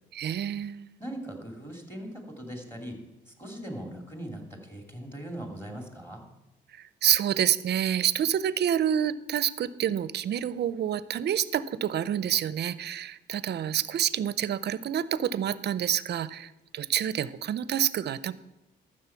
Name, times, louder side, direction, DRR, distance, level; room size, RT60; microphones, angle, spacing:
voice 1, 0.1-0.9 7.0-18.3, right 10 dB, 55° right, 17 dB, 0.6 m, -28 dB
voice 2, 1.0-3.0 3.3-6.2, right 1 dB, 10° left, 2 dB, 2.6 m, -40 dB
13.5 x 6.5 x 5.7 m, 0.99 s
cardioid pair, 90°, 20 cm